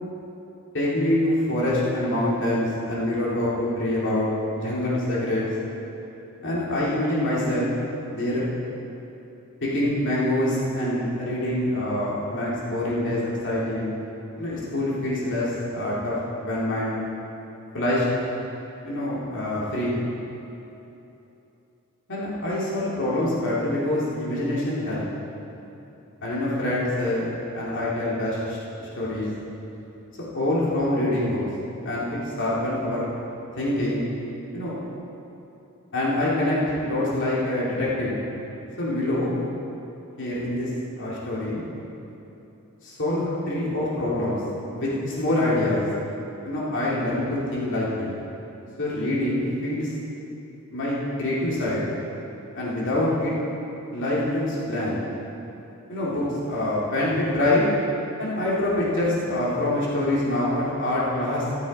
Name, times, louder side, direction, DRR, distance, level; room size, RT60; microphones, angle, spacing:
voice 1, 0.7-4.3 4.5-5.4 6.4-7.7 8.1-8.4 9.6-13.9 14.4-17.0 17.7-18.0 18.8-20.0 22.1-25.0 26.2-29.3 30.3-31.4 31.8-33.1 33.6-34.0 34.5-34.8 35.9-38.2 38.8-39.4 40.2-40.7 41.0-41.7 42.8-44.4 44.7-45.9 46.4-48.2 48.8-49.9 50.7-51.8 52.5-53.3 53.9-55.0 55.9-57.7 58.2-61.5, left 1 dB, 55° left, -7 dB, 2.8 m, -25 dB
15.0 x 13.5 x 4.3 m, 3.0 s
head